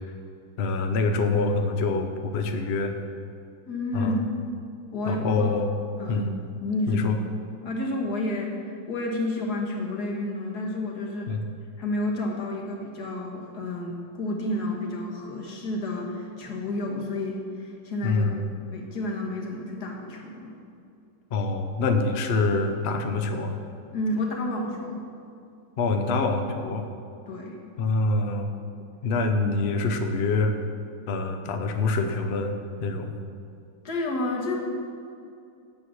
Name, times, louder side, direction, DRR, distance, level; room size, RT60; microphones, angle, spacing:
voice 1, 0.6-2.9 3.9-4.1 5.1-5.7 6.1-6.3 6.9-7.2 11.3-11.4 18.0-18.5 21.3-23.5 25.8-26.9 27.8-28.5 29.0-30.6 31.1-32.5 32.8-33.1, left 3 dB, 80° left, 5 dB, 0.5 m, -25 dB
voice 2, 3.7-4.2 4.9-5.5 6.0-6.3 6.6-7.1 7.6-11.3 11.8-18.2 18.7-20.5 23.9-25.0 27.3-27.6 33.8-34.7, left 1 dB, 55° left, 0 dB, 1.8 m, -30 dB
8.7 x 7.5 x 6.2 m, 2.5 s
omnidirectional pair, 2.2 m